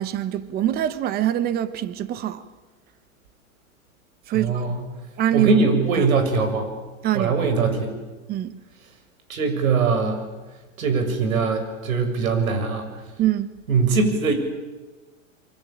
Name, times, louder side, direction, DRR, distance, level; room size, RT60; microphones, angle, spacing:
voice 1, 0.0-2.4 4.3-4.8 5.2-5.5 6.0-6.1 7.0-7.3 8.3-8.5 13.2-13.5, right 12 dB, 20° right, 1.3 m, -24 dB
voice 2, 4.3-4.8 5.3-6.7 7.1-8.0 9.3-10.2 10.8-12.9 13.7-14.3, right 4 dB, 80° right, 7.0 m, -21 dB
26.5 x 24.5 x 8.9 m
supercardioid pair, 155°, 41 cm